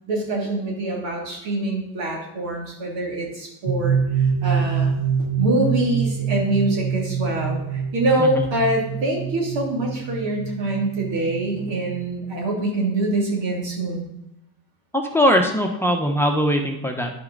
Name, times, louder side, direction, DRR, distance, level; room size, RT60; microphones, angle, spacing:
voice 1, 0.1-4.9 5.4-14.0, right 2 dB, 70° right, -2 dB, 3.1 m, -25 dB
sound 1, 3.7-12.1, right 6 dB, 15° right, 1.3 m, -25 dB
voice 2, 14.9-17.1, equal, 5° left, 3 dB, 1.0 m, -20 dB
10.5 x 5.7 x 4.0 m, 0.85 s
supercardioid pair, 75°, 46 cm